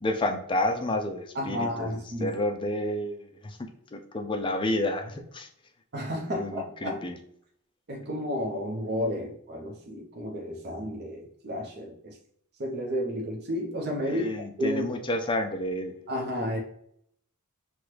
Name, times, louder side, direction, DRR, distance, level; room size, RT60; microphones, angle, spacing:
voice 1, 0.0-3.6 3.9-5.5 6.3-7.2 14.0-15.9, left 1 dB, 20° left, 5 dB, 0.4 m, -30 dB
voice 2, 1.3-2.4 5.9-7.0 7.9-12.2 12.6-14.3 14.6-14.9 16.1-16.6, equal, 50° right, -1 dB, 0.8 m, -32 dB
5.9 x 2.3 x 3.2 m, 0.70 s
head